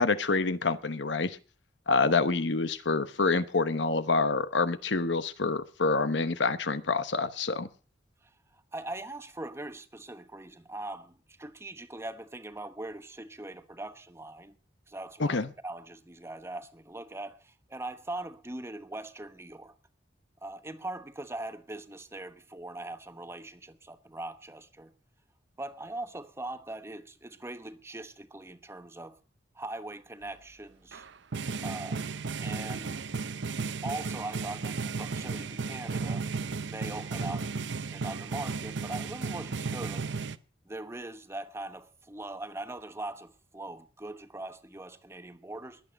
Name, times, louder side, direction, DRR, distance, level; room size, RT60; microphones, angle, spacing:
voice 1, 0.0-1.4 1.9-7.7 15.2-15.5, left 3 dB, 85° left, 1.1 m, -27 dB
voice 2, 8.2-14.5 14.9-19.7 20.4-24.9 25.6-29.2 29.5-31.1 31.6-32.0 32.4-33.0 33.8-36.2 36.6-37.5 37.9-40.1 40.7-45.8, right 2 dB, 15° right, 1.0 m, -41 dB
sound 1, 30.9-40.4, right 4 dB, 85° right, 0.7 m, -34 dB
21.5 x 8.6 x 5.3 m
head